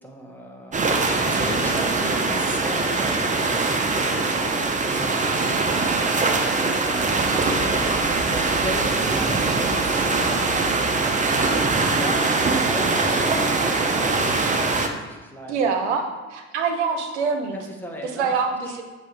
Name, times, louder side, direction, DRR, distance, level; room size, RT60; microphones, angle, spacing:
voice 1, 0.0-5.7 6.3-7.6 8.0-10.5 11.8-14.6 14.9-15.9 17.5-18.3 18.6-18.8, equal, 5° left, -1 dB, 1.3 m, -37 dB
sound 1, 0.7-14.9, right 3 dB, 20° right, 0.7 m, -22 dB
voice 2, 15.5-16.0 16.3-17.6 18.2-18.8, right 5 dB, 85° right, 5 dB, 0.7 m, -24 dB
7.4 x 2.8 x 4.7 m, 1.2 s
hypercardioid pair, 65°, 34 cm